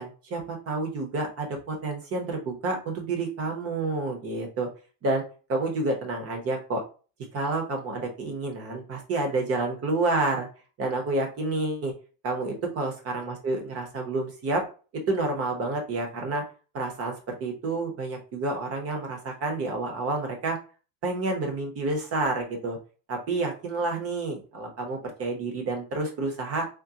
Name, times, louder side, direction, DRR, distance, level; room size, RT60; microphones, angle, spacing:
voice 1, 0.0-4.7 5.0-5.2 5.5-6.8 7.3-10.5 10.8-11.9 12.2-14.6 14.9-16.4 16.7-20.6 21.0-22.8 23.1-26.6, right 2 dB, 35° right, 2 dB, 0.9 m, -29 dB
3.7 x 2.1 x 2.7 m, 0.35 s
cardioid pair, 165°, 44 cm